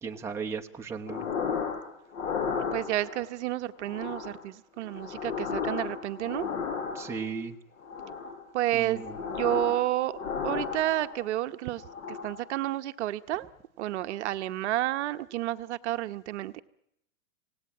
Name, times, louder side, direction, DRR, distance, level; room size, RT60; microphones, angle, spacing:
voice 1, 0.0-1.3 6.9-7.5 8.7-9.1, right 5 dB, 5° right, 2 dB, 1.0 m, -36 dB
sound 1, 1.1-1.8 2.1-3.2 3.8-4.4 4.8-7.3 7.8-8.4 8.8-9.8 10.1-11.3 11.7-12.4, left 6 dB, 70° left, 5.1 m, -34 dB
voice 2, 2.7-6.5 8.5-10.2 10.4-11.8 12.1-13.5 13.8-16.6, right 15 dB, 55° right, 11 dB, 1.0 m, -30 dB
26.5 x 18.0 x 8.8 m, 0.80 s
supercardioid pair, 155°, 40 cm